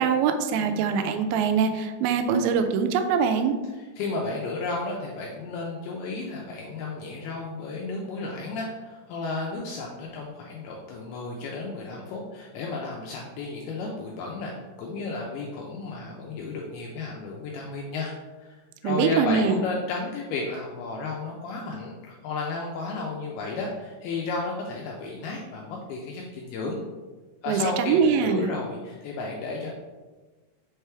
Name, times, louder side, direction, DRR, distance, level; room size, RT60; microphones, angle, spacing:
voice 1, 0.0-3.6 18.8-19.6 27.5-28.5, right 6 dB, 85° right, 7 dB, 2.8 m, -23 dB
voice 2, 3.7-14.5 14.8-26.8 27.4-29.7, left 3 dB, 85° left, -1 dB, 2.2 m, -33 dB
6.4 x 4.4 x 3.4 m, 1.3 s
omnidirectional pair, 5.1 m